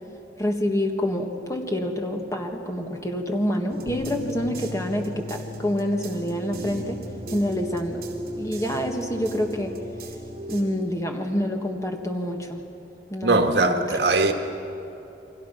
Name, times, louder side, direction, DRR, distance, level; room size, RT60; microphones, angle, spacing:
voice 1, 0.4-7.0 7.3-8.0 8.3-9.7 10.5-12.6 13.1-14.0, equal, 20° left, 2 dB, 1.8 m, -27 dB
Space ambient music fragment, 3.7-10.6, right 1 dB, 55° right, 3.4 m, -38 dB
Bass guitar, 3.9-10.1, left 2 dB, 50° left, 2.9 m, -40 dB
voice 2, 13.2-14.3, right 2 dB, 80° right, 5 dB, 1.8 m, -20 dB
29.5 x 23.0 x 5.9 m, 3.0 s
head